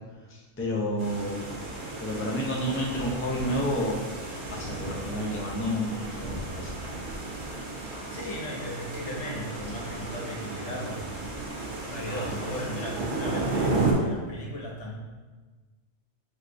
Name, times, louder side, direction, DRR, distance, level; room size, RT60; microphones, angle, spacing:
voice 1, 0.3-1.4 2.0-4.0 4.5-6.7, equal, 20° left, -3 dB, 0.4 m, -30 dB
sound 1, 1.0-13.9, right 3 dB, 50° right, 0.9 m, -33 dB
voice 2, 8.1-14.9, equal, 75° left, -2 dB, 1.1 m, -37 dB
4.5 x 3.5 x 2.5 m, 1.3 s
omnidirectional pair, 1.2 m